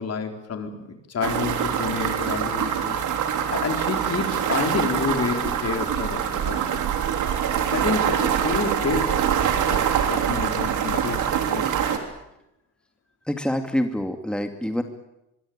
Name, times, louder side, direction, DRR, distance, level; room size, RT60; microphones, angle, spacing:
voice 1, 0.0-3.0 3.5-6.8 7.7-9.8 10.1-11.7, left 5 dB, 55° left, 5 dB, 4.4 m, -29 dB
sound 1, 1.2-12.0, right 8 dB, 80° right, 3.6 m, -24 dB
voice 2, 13.3-14.8, equal, 5° left, 6 dB, 2.5 m, -26 dB
24.0 x 23.5 x 8.9 m, 0.88 s
cardioid pair, 90°, 30 cm